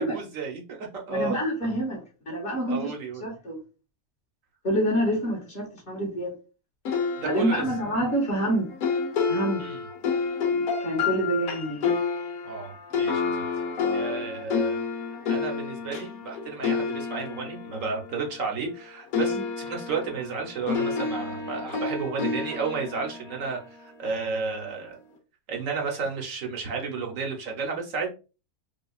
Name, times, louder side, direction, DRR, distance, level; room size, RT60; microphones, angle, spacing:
voice 1, 0.0-1.4 2.7-3.2 7.2-7.6 9.6-9.8 12.4-13.4 13.9-14.8 15.3-25.0 25.5-28.1, right 4 dB, 60° right, 1.2 m, -32 dB
voice 2, 1.1-2.9 3.2-3.6 4.6-6.3 7.2-8.7 9.3-9.6 10.5-11.9 19.3-19.4, right 1 dB, 35° left, 1.8 m, -27 dB
sound 1, 6.8-18.8 19.1-24.3, left 5 dB, 75° left, 1.2 m, -30 dB
5.0 x 2.3 x 2.4 m
omnidirectional pair, 1.6 m